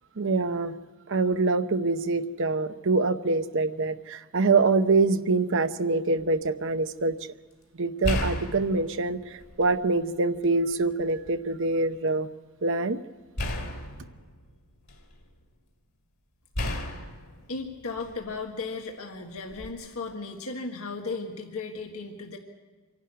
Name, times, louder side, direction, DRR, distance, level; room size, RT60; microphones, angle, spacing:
voice 1, 0.2-0.7 1.1-7.1 7.8-12.3 12.6-13.0, right 3 dB, 60° right, 10 dB, 0.8 m, -25 dB
sound 1, 6.2-6.5 8.0-9.9 10.3-11.3 13.4-15.3 16.5-18.4 19.5-19.7, left 1 dB, 55° left, 2.7 m, -34 dB
voice 2, 17.5-22.4, left 3 dB, 80° left, 1 dB, 1.7 m, -35 dB
26.0 x 11.5 x 9.6 m, 1.4 s
head